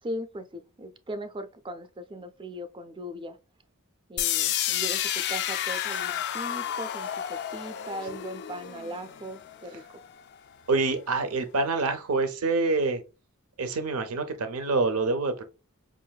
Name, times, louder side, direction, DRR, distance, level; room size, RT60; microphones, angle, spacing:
voice 1, 0.0-3.4 4.1-10.0, equal, 20° right, 0.5 m, -39 dB
sound 1, 4.2-10.1, left 11 dB, 50° left, 0.3 m, -31 dB
voice 2, 10.7-13.0 13.6-15.4, right 3 dB, 75° right, 0.6 m, -26 dB
5.5 x 2.5 x 2.3 m
head